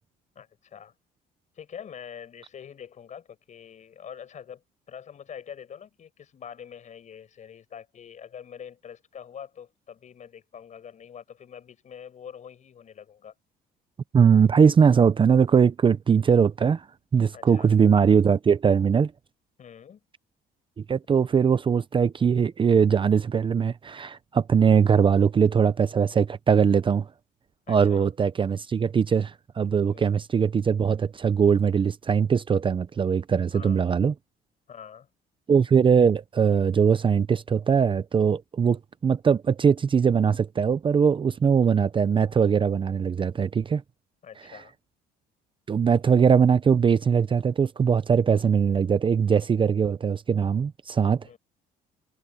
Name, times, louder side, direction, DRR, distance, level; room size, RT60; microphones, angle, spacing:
voice 1, 0.3-0.9 1.5-13.3 17.3-17.7 19.6-20.0 27.7-28.1 29.9-30.1 33.5-33.9 34.7-35.1 44.2-44.7 51.2-51.4, left 8 dB, 45° left, 6.3 m, -44 dB
voice 2, 14.1-16.9 17.1-19.1 20.9-27.1 27.7-34.1 35.5-43.8 44.5-44.6 45.7-51.3, right 6 dB, 30° right, 0.7 m, -21 dB
cardioid pair, 110°, 17 cm